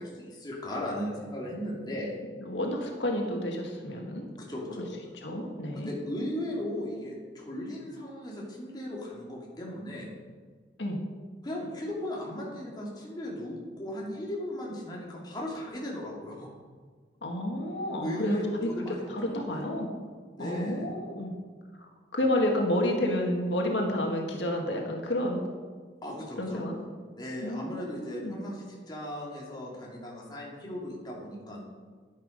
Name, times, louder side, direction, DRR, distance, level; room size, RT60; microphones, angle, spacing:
voice 1, 0.0-2.1 4.4-4.8 5.7-10.1 11.4-16.5 18.0-19.6 20.4-20.9 26.0-26.6 27.2-31.6, left 1 dB, 25° left, -3 dB, 2.6 m, -37 dB
voice 2, 2.4-4.3 5.2-5.9 10.8-11.0 17.2-19.9 20.4-21.3 21.7-25.4 26.4-26.8 27.4-28.4, left 1 dB, 85° left, 1 dB, 1.8 m, -30 dB
10.5 x 10.5 x 5.3 m, 1.5 s
head